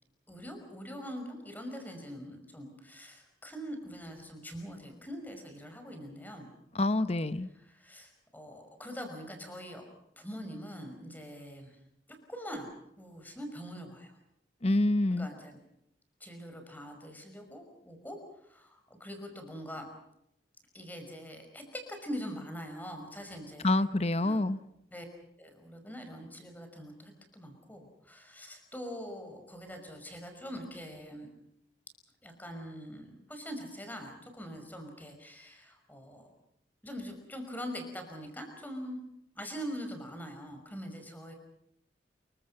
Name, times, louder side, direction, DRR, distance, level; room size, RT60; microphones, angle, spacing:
voice 1, 0.3-6.5 7.5-9.9 10.2-11.8 12.1-12.7 13.0-14.2 15.1-15.6 16.2-19.9 20.7-23.8 24.2-24.4 24.9-25.1 25.4-31.3 32.2-36.3 36.8-39.0 39.4-41.3, equal, 10° left, 5 dB, 5.5 m, -43 dB
voice 2, 6.8-7.5 14.6-15.3 23.6-24.6, left 2 dB, 35° left, 13 dB, 0.9 m, -27 dB
28.5 x 23.5 x 5.7 m, 0.77 s
head